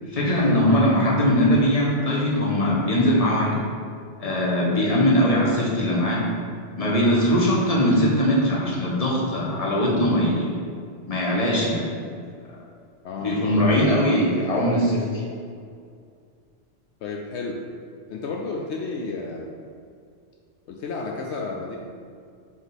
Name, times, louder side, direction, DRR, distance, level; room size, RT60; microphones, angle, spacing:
voice 1, 0.0-3.6 4.2-6.3 6.8-10.5 11.1-11.9 13.2-15.2, equal, 35° left, -4 dB, 1.2 m, -21 dB
voice 2, 13.0-13.4 17.0-17.6 18.1-19.6 20.7-21.8, left 3 dB, 75° left, 0 dB, 0.9 m, -32 dB
5.2 x 5.0 x 4.0 m, 2.3 s
omnidirectional pair, 1.2 m